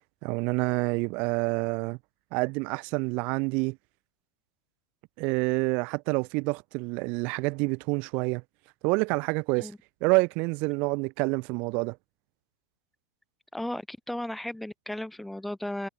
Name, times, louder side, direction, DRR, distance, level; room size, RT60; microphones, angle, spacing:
voice 1, 0.2-2.0 2.3-3.8 5.2-8.4 8.8-9.7 10.0-12.0, right 29 dB, 45° right, 5.3 m, -27 dB
voice 2, 13.5-15.9, left 1 dB, ahead, 4.9 m, -35 dB
supercardioid pair, 150°, 3 cm